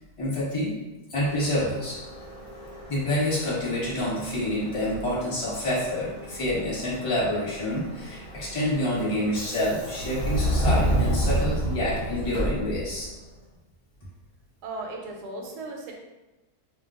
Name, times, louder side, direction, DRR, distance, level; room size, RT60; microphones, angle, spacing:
voice 1, 0.2-0.7 1.1-2.0 2.9-13.1, left 1 dB, 25° left, -6 dB, 0.9 m, -27 dB
Subway metro underground, 1.2-13.2, equal, 65° left, 0.4 m, -31 dB
voice 2, 14.6-15.9, right 2 dB, 90° right, 1 dB, 1.2 m, -36 dB
2.6 x 2.2 x 3.6 m, 1.1 s
omnidirectional pair, 1.7 m